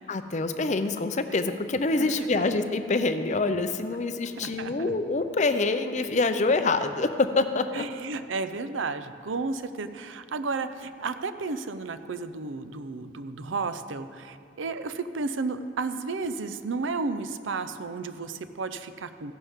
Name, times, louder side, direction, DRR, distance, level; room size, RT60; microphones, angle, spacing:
voice 1, 0.1-7.8, left 3 dB, 35° left, 9 dB, 0.5 m, -26 dB
voice 2, 2.0-2.4 4.4-4.9 7.7-19.3, right 4 dB, 75° right, 11 dB, 0.6 m, -33 dB
15.5 x 11.0 x 3.6 m, 2.3 s
head